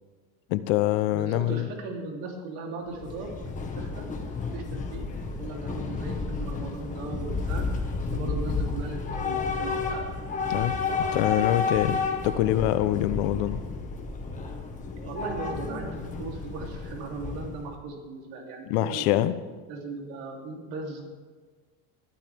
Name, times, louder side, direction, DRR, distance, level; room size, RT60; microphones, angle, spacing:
voice 1, 0.5-1.7 10.5-10.8 11.1-13.6 18.7-19.4, left 14 dB, 85° left, 13 dB, 0.9 m, -25 dB
voice 2, 1.1-4.1 4.5-5.1 5.4-10.1 15.0-19.3 19.7-21.0, right 3 dB, 70° right, 0 dB, 3.3 m, -38 dB
Train / Subway metro underground, 2.9-17.7, left 4 dB, 20° left, 1.5 m, -31 dB
20.5 x 12.5 x 3.6 m, 1.4 s
cardioid pair, 165°, 38 cm